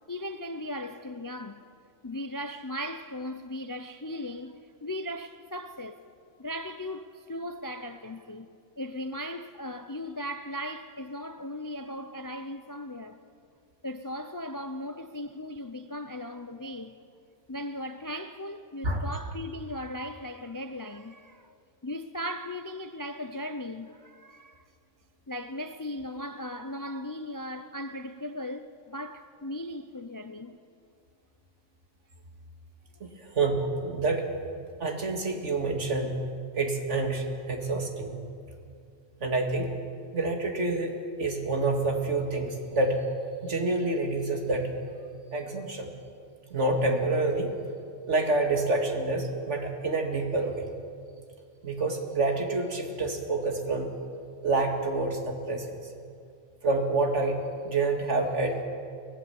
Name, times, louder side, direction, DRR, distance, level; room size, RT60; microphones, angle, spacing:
voice 1, 0.1-1.7 2.0-6.0 6.4-8.5 8.8-13.2 13.8-17.0 17.5-21.6 21.8-24.6 25.3-30.6, left 1 dB, 25° left, 0.4 m, -37 dB
voice 2, 33.0-34.2 34.8-36.2 36.5-38.2 39.2-39.7 40.1-43.1 43.4-44.7 45.3-45.9 46.5-47.5 48.1-50.6 51.6-53.9 54.4-55.8 56.6-57.4 57.6-58.6, right 2 dB, 70° right, 2.4 m, -28 dB
23.5 x 18.0 x 7.1 m
omnidirectional pair, 1.3 m